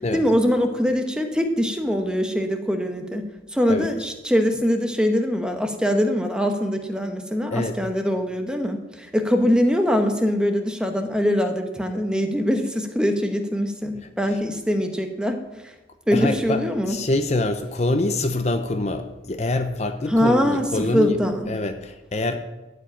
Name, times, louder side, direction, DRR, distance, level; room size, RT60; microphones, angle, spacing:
voice 1, 0.1-3.2 3.5-15.4 16.1-17.0 20.1-21.5, equal, 5° right, 5 dB, 0.9 m, -22 dB
voice 2, 16.1-21.2 21.5-22.4, left 2 dB, 40° left, 8 dB, 0.6 m, -25 dB
12.5 x 5.2 x 8.9 m, 1.1 s
head